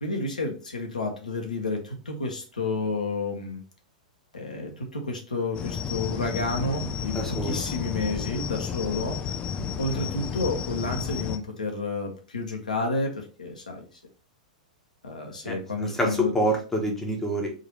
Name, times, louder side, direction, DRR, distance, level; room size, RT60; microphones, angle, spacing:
voice 1, 0.0-3.6 4.3-9.4 9.8-14.0 15.0-16.3, left 3 dB, 80° left, 2 dB, 1.1 m, -30 dB
sound 1, 5.5-11.4, left 7 dB, 25° left, 0.4 m, -32 dB
voice 2, 7.1-7.6 9.5-9.8 15.4-17.5, equal, 5° left, -1 dB, 1.2 m, -27 dB
3.8 x 2.9 x 4.3 m, 0.36 s
figure-of-eight pair, 100°, 4 cm